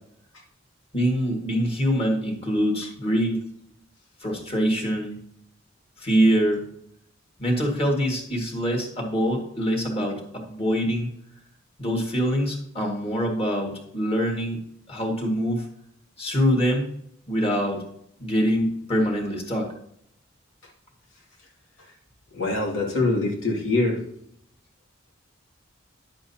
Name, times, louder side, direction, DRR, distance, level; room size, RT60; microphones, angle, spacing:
voice 1, 0.9-3.5 4.2-5.2 6.0-6.7 7.4-11.1 11.8-15.7 16.2-16.9 17.3-17.8 18.2-19.7, equal, 30° left, 0 dB, 2.0 m, -24 dB
voice 2, 22.3-24.0, left 2 dB, 90° left, -2 dB, 2.4 m, -24 dB
10.5 x 7.7 x 2.8 m, 0.71 s
head